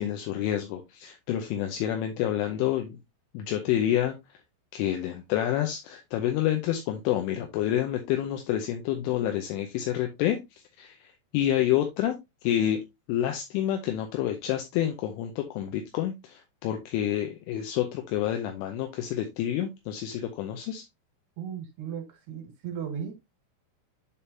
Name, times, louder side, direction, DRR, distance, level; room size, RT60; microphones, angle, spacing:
voice 1, 0.0-3.0 3.3-4.2 4.7-12.1 12.4-12.8 13.1-20.8, left 11 dB, 80° left, 3.1 m, -28 dB
voice 2, 21.4-23.1, right 8 dB, 60° right, 3.5 m, -36 dB
11.0 x 3.7 x 2.7 m
omnidirectional pair, 5.9 m